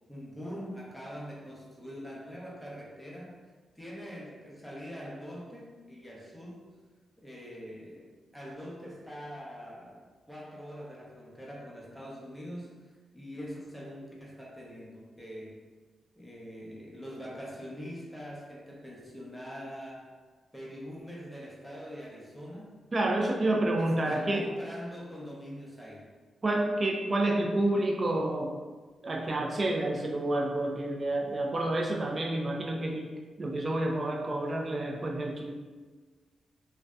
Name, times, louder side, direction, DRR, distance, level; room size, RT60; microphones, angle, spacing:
voice 1, 0.1-3.4 3.7-6.7 7.2-8.1 8.3-15.6 16.2-20.1 20.5-22.7 23.8-26.1, equal, 5° left, -4 dB, 0.7 m, -43 dB
voice 2, 22.9-24.5 26.4-28.5 29.0-33.1 33.4-35.5, right 1 dB, 40° right, 1 dB, 0.4 m, -29 dB
2.5 x 2.2 x 2.3 m, 1.4 s
cardioid pair, 65°, 0 cm